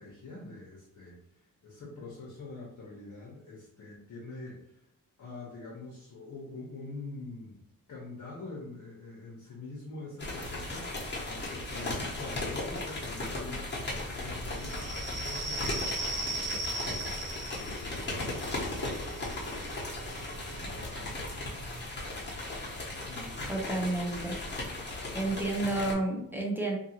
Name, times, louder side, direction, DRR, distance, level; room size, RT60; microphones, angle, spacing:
voice 1, 0.0-4.8 5.2-7.6 7.9-10.8 11.3-16.8 17.4-19.8 20.7-21.3 22.6-22.7 23.0-23.6, left 2 dB, 55° left, -5 dB, 0.9 m, -45 dB
sound 1, 10.2-25.9, left 2 dB, 30° left, 1.0 m, -37 dB
sound 2, 14.5-21.8, right 2 dB, 60° right, 0.7 m, -39 dB
voice 2, 23.5-24.4 25.1-26.8, right 2 dB, 5° right, -1 dB, 0.6 m, -30 dB
2.7 x 2.6 x 2.8 m, 0.79 s
wide cardioid pair, 105°, 35 cm